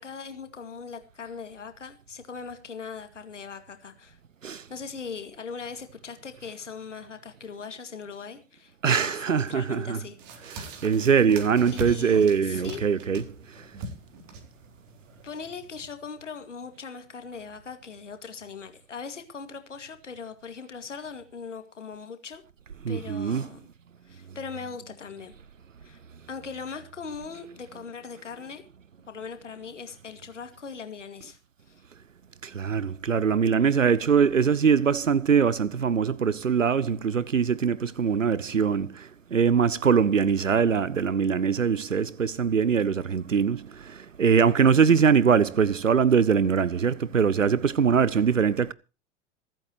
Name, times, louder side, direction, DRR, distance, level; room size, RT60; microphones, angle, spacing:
voice 1, 0.0-4.2 4.7-10.2 11.7-12.8 15.2-22.4 22.9-23.7 24.1-25.3 25.8-26.0 26.3-28.6 29.1-31.4 31.7-31.8, left 5 dB, 75° left, 2.3 m, -40 dB
voice 2, 8.8-10.0 10.6-13.2 22.9-23.5 32.6-38.9 39.3-43.6 44.2-48.7, right 6 dB, 90° right, 0.6 m, -22 dB
sound 1, 10.2-15.9, right 2 dB, 45° right, 4.0 m, -41 dB
26.5 x 8.9 x 3.1 m
figure-of-eight pair, 90°, 37 cm